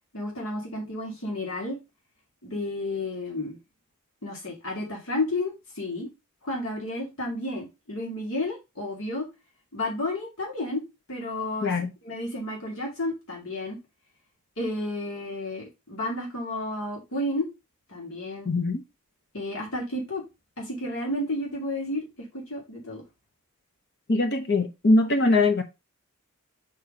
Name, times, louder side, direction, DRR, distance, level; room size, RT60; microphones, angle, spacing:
voice 1, 0.1-1.8 2.4-3.6 4.2-6.1 6.4-9.3 9.7-10.8 11.1-11.7 12.0-13.8 14.6-17.5 17.9-18.5 19.3-20.2 20.6-23.0, left 1 dB, 75° left, 2.4 m, -31 dB
voice 2, 18.5-18.8 24.1-25.6, left 2 dB, 50° left, 0.8 m, -22 dB
5.5 x 4.2 x 4.9 m
head